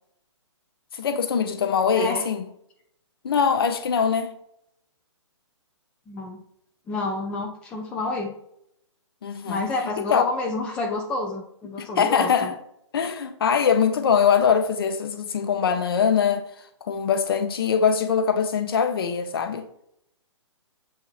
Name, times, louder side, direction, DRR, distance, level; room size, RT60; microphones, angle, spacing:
voice 1, 0.9-2.5 3.2-4.3 9.2-9.6 10.0-10.2 11.8-12.6 12.9-16.5 16.9-19.7, left 7 dB, 50° left, 0.7 m, -22 dB
voice 2, 1.9-2.2 6.1-6.4 6.9-8.3 9.5-12.5, left 2 dB, 5° left, 0.3 m, -29 dB
7.4 x 2.9 x 2.4 m
figure-of-eight pair, 130°, 16 cm